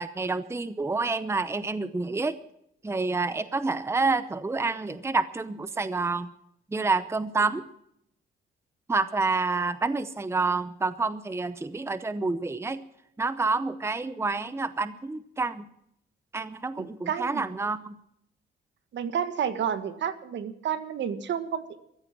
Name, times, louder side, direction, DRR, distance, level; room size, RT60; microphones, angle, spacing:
voice 1, 0.0-2.3 2.8-6.3 6.7-7.6 8.9-12.8 13.2-15.7 16.3-18.0, right 3 dB, 15° right, 13 dB, 0.8 m, -28 dB
voice 2, 16.8-17.5 18.9-21.8, right 8 dB, 65° right, 10 dB, 1.7 m, -30 dB
15.0 x 14.0 x 6.1 m, 0.76 s
cardioid pair, 90°, 20 cm